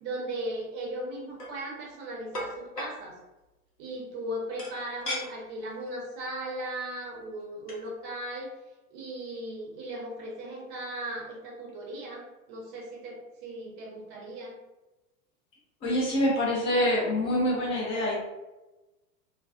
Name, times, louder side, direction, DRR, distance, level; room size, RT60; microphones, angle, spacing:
voice 1, 0.0-3.2 3.8-8.5 8.9-14.6, right 1 dB, 30° right, -2 dB, 0.7 m, -37 dB
sound 1, 1.1-1.5 2.3-2.9 4.6-5.2 5.8-5.9 6.2-6.4 7.4-7.5 7.7-7.9, left 1 dB, 80° left, 0.8 m, -35 dB
voice 2, 15.8-18.1, left 1 dB, 15° left, -5 dB, 0.4 m, -25 dB
2.3 x 2.2 x 2.4 m, 1.0 s
figure-of-eight pair, 95°, 47 cm